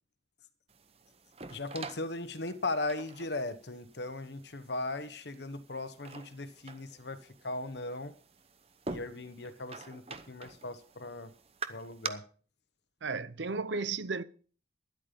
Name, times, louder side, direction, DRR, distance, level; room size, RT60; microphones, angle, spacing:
sound 1, 0.7-12.1, right 4 dB, 35° right, 0.8 m, -46 dB
voice 1, 1.5-7.2 7.4-8.1 8.9-11.3 11.7-12.2, left 2 dB, 65° left, 1.1 m, -38 dB
voice 2, 13.0-14.2, right 4 dB, 80° right, 0.8 m, -34 dB
12.5 x 11.0 x 5.3 m
head